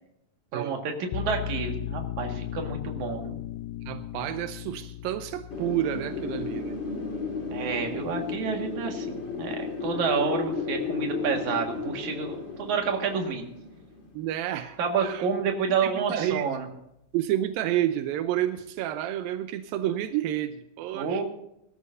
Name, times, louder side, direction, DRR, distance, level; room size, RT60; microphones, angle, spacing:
voice 1, 0.5-3.4 7.5-13.4 14.8-16.7 20.9-21.2, right 6 dB, 60° right, 2 dB, 3.1 m, -29 dB
sound 1, 1.1-12.4, left 13 dB, 85° left, 2.4 m, -39 dB
voice 2, 3.9-6.8 7.9-8.0 14.1-15.3 15.8-16.5 17.1-21.2, right 12 dB, 85° right, 9 dB, 2.5 m, -30 dB
Wind, 5.5-14.2, left 4 dB, 25° left, 1.9 m, -33 dB
21.5 x 13.0 x 2.7 m, 0.80 s
omnidirectional pair, 4.1 m